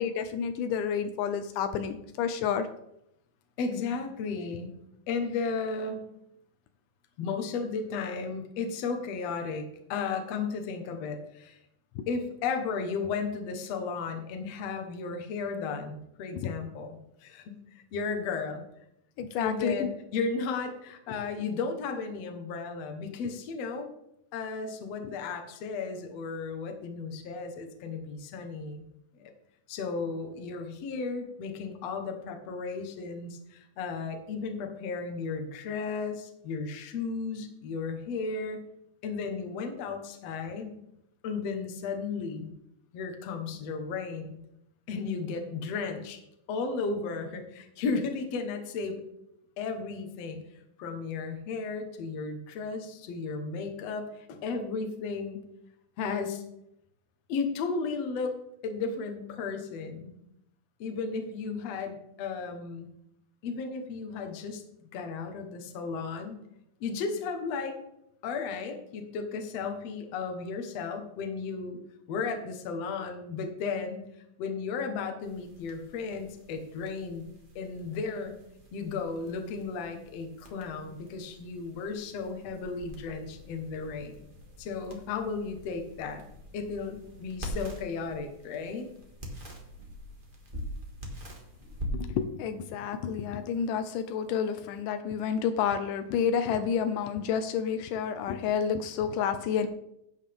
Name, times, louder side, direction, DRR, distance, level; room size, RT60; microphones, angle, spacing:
voice 1, 0.0-2.7 12.0-12.1 16.3-16.5 19.2-19.9 91.9-99.7, left 7 dB, 85° left, 9 dB, 2.3 m, -30 dB
voice 2, 3.6-4.7 5.1-6.1 7.2-11.6 12.1-18.6 19.4-23.9 24.3-28.8 29.1-29.3 29.7-38.6 39.0-40.8 41.2-42.5 42.9-44.4 44.9-46.2 46.5-49.0 49.6-50.4 50.8-55.5 56.0-56.4 57.3-58.3 58.6-60.2 60.8-62.9 63.4-64.6 64.9-66.4 66.8-67.8 68.2-71.8 72.1-74.0 74.4-78.3 78.7-84.2 84.6-86.2 86.5-88.9, left 4 dB, 60° left, 5 dB, 2.2 m, -34 dB
sound 1, 75.2-94.8, equal, 20° right, 1.5 m, -45 dB
12.5 x 9.1 x 3.5 m, 0.79 s
omnidirectional pair, 3.7 m